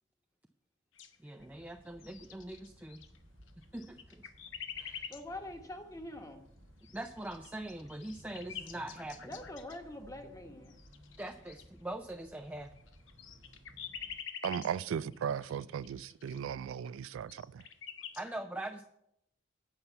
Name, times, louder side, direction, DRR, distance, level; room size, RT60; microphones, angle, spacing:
sound 1, 1.0-1.6 1.9-3.2 3.5-5.2 6.8-9.9 10.7-11.6 12.4-16.4 16.9-17.0 17.2-18.3, left 8 dB, 75° left, 0.9 m, -47 dB
voice 1, 1.2-3.0 3.7-4.3 4.8-5.1 6.9-9.3 11.2-12.7 18.2-18.9, right 1 dB, 10° right, 0.4 m, -42 dB
sound 2, 1.4-14.2, equal, 70° right, 1.6 m, -59 dB
voice 2, 5.1-6.4 9.2-10.7, left 1 dB, 15° left, 1.1 m, -44 dB
voice 3, 14.4-17.6, right 8 dB, 90° right, 0.3 m, -36 dB
8.9 x 5.6 x 7.8 m
head